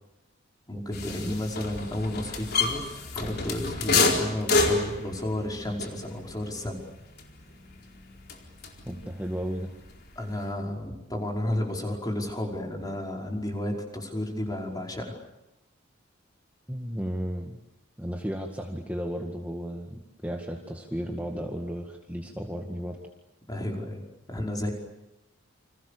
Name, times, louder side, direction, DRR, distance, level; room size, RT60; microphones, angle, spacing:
voice 1, 0.7-6.8 10.2-15.2 21.3-21.4 23.5-24.0 24.3-24.7, left 1 dB, 20° left, 1 dB, 5.3 m, -32 dB
sound 1, 0.9-9.0 9.3-10.5, left 3 dB, 50° left, 4.4 m, -29 dB
voice 2, 8.9-9.7 16.7-17.6 18.0-23.0, equal, 10° right, 1 dB, 1.9 m, -34 dB
30.0 x 26.0 x 6.9 m, 0.91 s
head